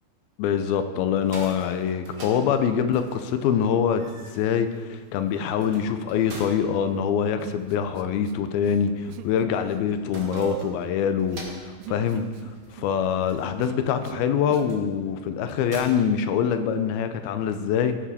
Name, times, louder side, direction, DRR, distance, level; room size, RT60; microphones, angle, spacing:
voice 1, 0.4-4.0 4.3-18.0, left 8 dB, 80° left, 9 dB, 2.5 m, -24 dB
sound 1, 1.0-17.0, right 2 dB, 40° right, 1.2 m, -47 dB
Human voice, 7.4-8.3 8.6-9.4 9.6-14.8, right 13 dB, 85° right, 2.6 m, -41 dB
17.0 x 8.6 x 4.2 m, 1.5 s
omnidirectional pair, 4.5 m